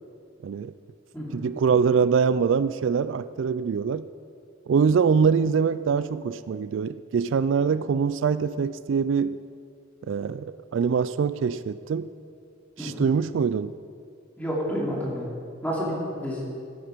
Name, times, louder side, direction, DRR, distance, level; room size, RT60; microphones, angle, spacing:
voice 1, 1.3-4.0 4.7-9.4 10.1-12.1 12.8-13.7, right 6 dB, 70° right, 14 dB, 0.3 m, -24 dB
voice 2, 14.4-15.3 15.6-16.4, equal, 10° left, -5 dB, 3.0 m, -29 dB
13.0 x 10.5 x 5.1 m, 2.3 s
head